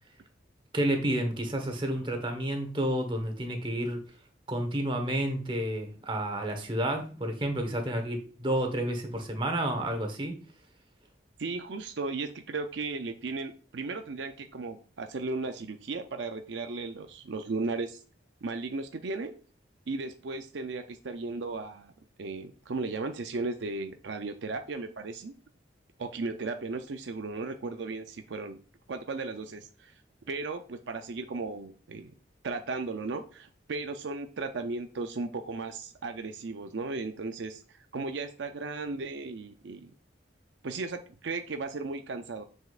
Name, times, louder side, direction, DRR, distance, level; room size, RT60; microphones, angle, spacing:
voice 1, 0.7-4.0 4.5-10.4, right 1 dB, 25° right, 5 dB, 1.1 m, -30 dB
voice 2, 11.4-18.0 18.4-19.3 19.9-21.9 22.2-25.3 26.0-28.6 28.9-29.9 30.2-32.1 32.4-39.9 40.6-42.4, right 3 dB, 75° right, 7 dB, 0.5 m, -36 dB
7.1 x 6.3 x 2.4 m, 0.38 s
head